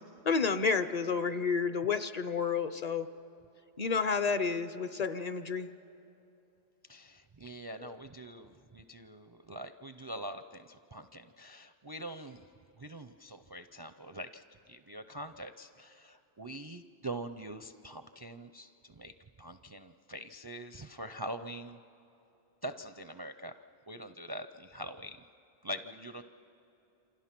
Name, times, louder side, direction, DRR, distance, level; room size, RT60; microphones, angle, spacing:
voice 1, 0.2-3.1 3.8-5.7 7.8-7.9, left 5 dB, 45° left, 11 dB, 0.7 m, -30 dB
voice 2, 6.9-12.4 12.8-21.8 22.6-23.5 23.9-25.2 25.6-26.2, right 1 dB, 30° right, 9 dB, 0.4 m, -44 dB
28.0 x 26.5 x 6.0 m, 2.9 s
omnidirectional pair, 1.1 m